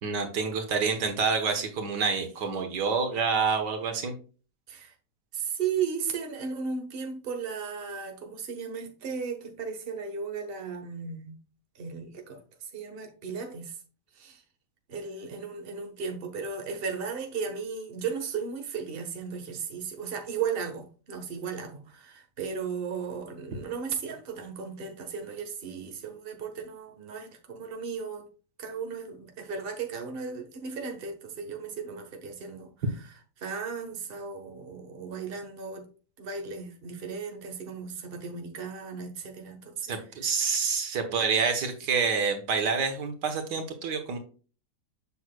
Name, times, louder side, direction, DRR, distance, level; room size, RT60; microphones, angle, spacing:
voice 1, 0.0-4.1 39.9-44.2, right 5 dB, 75° right, 1.8 m, -27 dB
voice 2, 5.3-11.4 11.7-12.4 12.7-13.7 14.2-14.4 14.9-28.2 28.6-32.7 33.4-35.9 36.2-39.8 41.0-41.2, right 6 dB, 35° right, 1.3 m, -35 dB
7.7 x 6.2 x 2.2 m
omnidirectional pair, 1.8 m